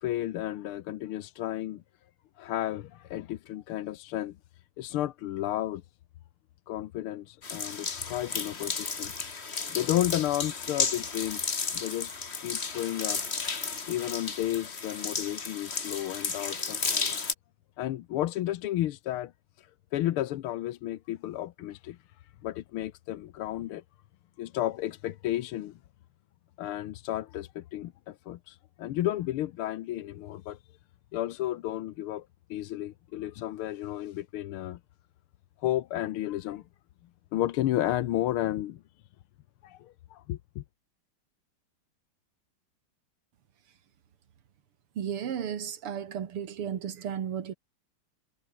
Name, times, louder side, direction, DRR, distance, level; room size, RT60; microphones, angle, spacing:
voice 1, 0.0-1.8 2.4-4.4 4.8-5.8 6.7-13.2 13.9-17.1 17.8-19.3 19.6-22.0 22.4-23.8 24.4-25.8 26.6-30.6 31.1-34.8 35.6-36.6 37.3-38.8 39.6-40.6, left 13 dB, 80° left, 1.7 m, -32 dB
sound 1, 7.4-17.3, left 4 dB, 30° left, 1.9 m, -33 dB
voice 2, 45.0-47.5, right 8 dB, 80° right, 2.7 m, -34 dB
omnidirectional pair, 2.4 m